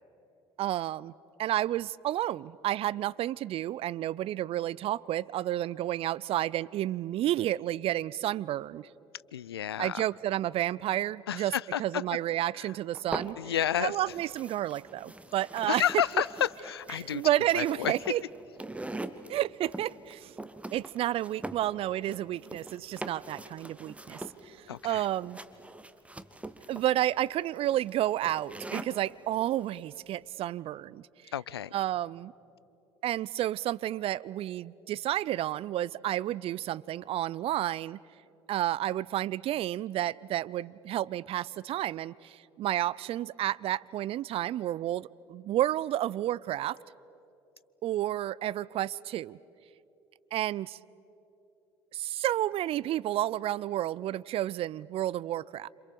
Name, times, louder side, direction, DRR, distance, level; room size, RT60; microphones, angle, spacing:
voice 1, 0.6-1.1 1.4-8.9 9.8-11.5 11.8-13.4 13.8-15.8 17.0-18.2 19.3-20.3 20.7-25.4 26.7-31.3 31.7-32.3 33.0-38.0 38.5-46.8 47.8-49.4 50.3-50.8 51.9-55.7, right 13 dB, 50° right, 0.5 m, -31 dB
voice 2, 9.3-10.0 11.3-12.0 12.6-12.7 13.4-14.0 15.7-17.2 17.5-17.9 24.7-25.0 31.3-31.8, left 10 dB, 85° left, 0.5 m, -30 dB
sound 1, 12.9-13.8 14.1-29.1, right 2 dB, 10° right, 1.4 m, -43 dB
29.0 x 27.0 x 7.0 m
hypercardioid pair, 60°, 13 cm